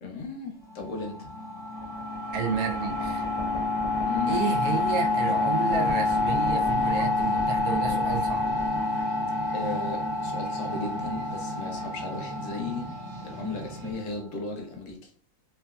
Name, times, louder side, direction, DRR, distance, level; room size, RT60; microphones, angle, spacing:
voice 1, 0.0-1.3 4.0-4.4 4.7-4.8 9.5-12.9 13.2-15.1, left 3 dB, 65° left, 1.0 m, -35 dB
sound 1, 0.6-14.1, left 2 dB, 45° left, 0.8 m, -28 dB
voice 2, 2.3-3.2 4.3-8.5, right 6 dB, 85° right, 1.0 m, -31 dB
sound 2, 4.5-13.9, right 3 dB, 55° right, 0.8 m, -41 dB
3.0 x 2.4 x 2.3 m
omnidirectional pair, 1.5 m